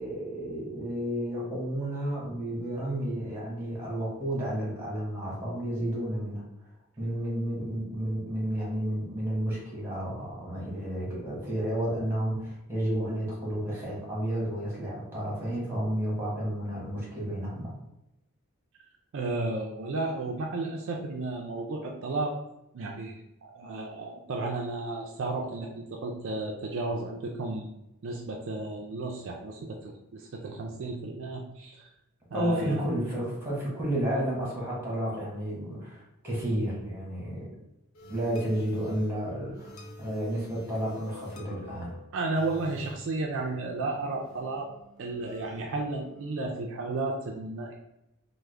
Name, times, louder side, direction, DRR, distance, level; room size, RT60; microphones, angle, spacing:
voice 1, 0.0-6.4 7.0-17.7 32.3-37.6 38.1-39.7 40.0-41.9, right 1 dB, 10° right, -5 dB, 1.2 m, -31 dB
voice 2, 19.1-22.4 22.7-27.7 28.0-31.9 32.3-32.9 42.1-44.7 45.0-47.7, right 2 dB, 60° right, 0 dB, 0.4 m, -33 dB
sound 1, 37.9-46.6, left 1 dB, 65° left, 0.7 m, -48 dB
3.5 x 2.1 x 3.2 m, 0.89 s
head